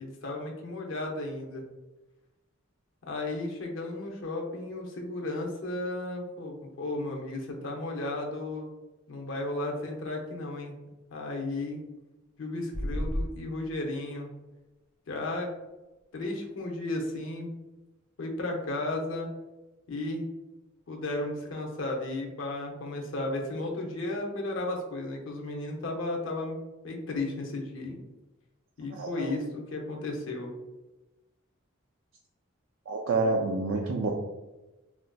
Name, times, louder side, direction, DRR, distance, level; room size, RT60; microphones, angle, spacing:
voice 1, 0.0-1.6 3.0-8.7 9.1-10.8 11.1-11.8 12.4-14.3 15.1-15.5 16.1-17.5 18.2-19.3 19.9-20.3 20.9-26.6 26.8-28.0 28.8-30.5, left 2 dB, 75° left, 0 dB, 0.6 m, -34 dB
sound 1, 12.7-13.3, equal, 10° left, 0.7 m, -30 dB
voice 2, 28.9-29.3 32.9-34.1, right 3 dB, 75° right, -1 dB, 0.4 m, -28 dB
3.8 x 2.4 x 2.2 m, 1.1 s
head